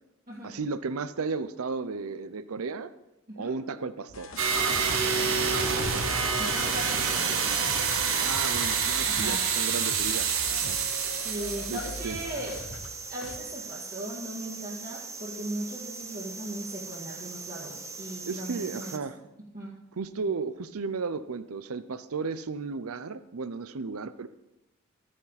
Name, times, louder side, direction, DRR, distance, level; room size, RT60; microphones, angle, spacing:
voice 1, 0.4-2.9 3.4-4.3 8.2-10.8 11.7-12.2 18.3-19.2 20.0-24.3, right 4 dB, 85° right, 14 dB, 0.6 m, -34 dB
sound 1, 4.1-12.9 13.2-13.4, left 2 dB, 70° left, 1.2 m, -42 dB
sound 2, 4.4-12.7, right 6 dB, 65° right, 1.4 m, -27 dB
voice 2, 5.2-5.6 6.4-7.4 9.0-9.4 11.2-12.6 13.1-19.2 19.5-19.8 20.2-20.3, right 1 dB, 40° right, -7 dB, 2.2 m, -38 dB
sound 3, 10.5-19.0, right 4 dB, 15° right, 0.7 m, -41 dB
13.0 x 9.9 x 4.1 m, 0.92 s
head